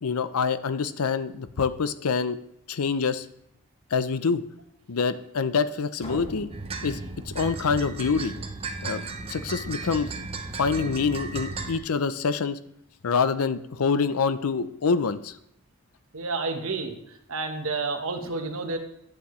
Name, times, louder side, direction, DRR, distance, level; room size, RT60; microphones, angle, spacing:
voice 1, 0.0-2.4 2.7-3.3 3.9-4.4 4.9-6.5 6.8-7.0 7.3-8.3 8.8-9.0 9.3-10.1 10.6-12.6 13.0-15.4, left 5 dB, 80° left, 13 dB, 0.6 m, -26 dB
sound 1, 6.0-7.9, equal, 25° left, 1.3 m, -42 dB
sound 2, 6.5-11.8, right 3 dB, 25° right, 0.7 m, -35 dB
voice 2, 16.1-17.0 17.3-18.8, right 3 dB, 65° right, 6 dB, 1.2 m, -30 dB
9.9 x 8.6 x 3.1 m, 0.75 s
head